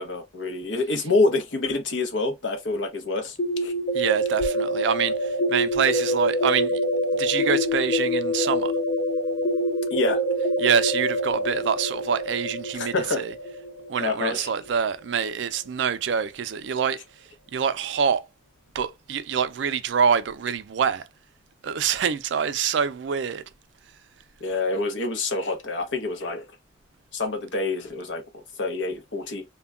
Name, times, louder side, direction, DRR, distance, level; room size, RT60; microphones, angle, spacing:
voice 1, 0.0-3.7 9.9-10.2 12.7-13.2 14.0-14.5 24.4-26.5 27.1-29.4, left 3 dB, 75° left, 0.7 m, -27 dB
sound 1, 3.4-15.1, equal, 45° left, 0.4 m, -26 dB
voice 2, 3.9-6.8 7.1-8.7 10.6-13.3 13.9-17.0 17.5-18.3 18.7-21.0 21.6-23.4, right 7 dB, 70° right, 0.4 m, -25 dB
2.2 x 2.1 x 3.6 m
head